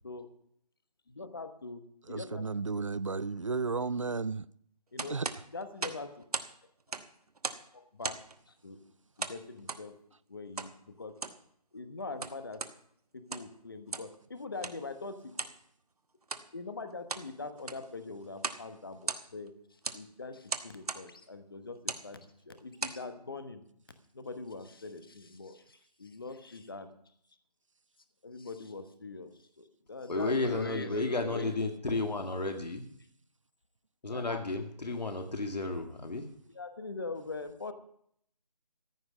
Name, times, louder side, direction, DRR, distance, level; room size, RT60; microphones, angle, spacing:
voice 1, 1.1-1.8 2.1-2.5 4.9-5.2 5.5-6.3 6.9-7.0 7.7-8.2 8.5-8.8 9.2-9.9 10.3-11.1 11.7-12.6 13.1-15.3 16.5-23.6 24.1-26.9 28.2-31.5 34.1-34.5 36.5-37.7, left 3 dB, 35° left, 1.1 m, -43 dB
voice 2, 2.1-4.5 5.1-5.3, right 4 dB, 50° right, 0.4 m, -33 dB
sound 1, 5.0-6.5 6.8-7.7 8.0-8.4 9.2-9.9 10.6-10.7 11.1-11.4 12.0-12.8 13.2-13.6 13.9-14.2 14.6-14.8 15.4-15.6 16.2-16.5 16.9-17.3 17.6-17.9 18.4-18.7 18.9-19.5 19.8-20.0 20.5-21.1 21.8-22.1 22.6-23.0, right 4 dB, 65° right, 1.1 m, -37 dB
voice 3, 30.1-32.8 34.0-36.3, left 2 dB, 80° left, 1.9 m, -32 dB
14.5 x 6.0 x 9.7 m
figure-of-eight pair, 180°, 21 cm